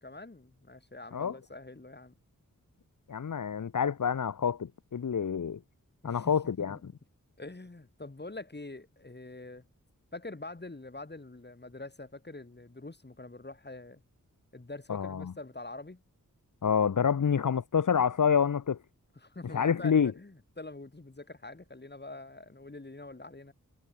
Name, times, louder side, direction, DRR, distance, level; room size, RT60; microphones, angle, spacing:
voice 1, 0.0-2.1 6.0-6.8 7.4-9.6 10.1-14.0 14.5-16.0 19.1-23.5, left 2 dB, 30° left, 6.8 m, -45 dB
voice 2, 3.1-5.6 6.0-6.8 14.9-15.3 16.6-18.8 19.5-20.1, left 7 dB, 65° left, 1.0 m, -27 dB
wide cardioid pair, 100°, 33 cm